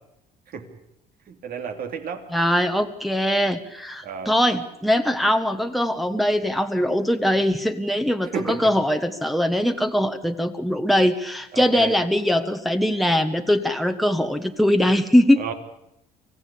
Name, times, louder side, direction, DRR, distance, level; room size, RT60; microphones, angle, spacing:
voice 1, 1.3-2.2 4.0-4.3 8.3-8.7 11.5-11.9 15.4-15.5, right 6 dB, 60° right, 5 dB, 3.1 m, -31 dB
voice 2, 2.3-15.4, equal, ahead, 5 dB, 1.5 m, -21 dB
24.5 x 16.0 x 8.6 m, 0.81 s
cardioid pair, 110°, 17 cm